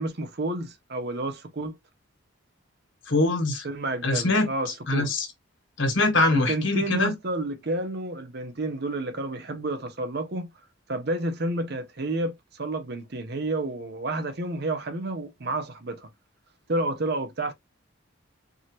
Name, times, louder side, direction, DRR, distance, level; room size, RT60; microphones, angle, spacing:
voice 1, 0.0-1.8 3.6-5.1 6.3-10.5 10.9-16.1 16.7-17.5, right 2 dB, 50° right, 0.7 m, -30 dB
voice 2, 3.1-3.6 4.0-4.5 4.9-5.3 5.8-7.1, left 2 dB, 65° left, 1.6 m, -23 dB
4.7 x 2.8 x 3.0 m
head